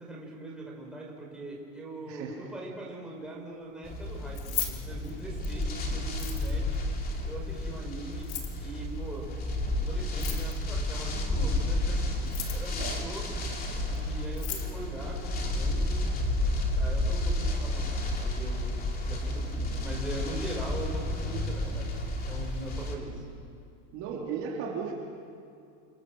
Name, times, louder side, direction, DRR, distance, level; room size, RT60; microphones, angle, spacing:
voice 1, 0.0-8.3 8.6-9.3 9.8-13.4 13.8-16.1 16.7-18.8 19.0-23.2, right 2 dB, ahead, -3 dB, 5.2 m, -41 dB
voice 2, 2.1-2.5 5.9-6.0 12.8-13.1 19.3-19.4 23.9-24.9, right 6 dB, 40° right, -1 dB, 3.2 m, -36 dB
sound 1, 3.8-23.0, left 1 dB, 20° left, 2.9 m, -31 dB
Keys jangling, 4.2-5.6 6.1-6.8 8.1-8.6 10.1-10.8 12.1-12.8 13.9-14.0 14.3-14.7, left 11 dB, 60° left, 4.3 m, -37 dB
28.5 x 26.5 x 7.8 m, 2.4 s
supercardioid pair, 180°, 46 cm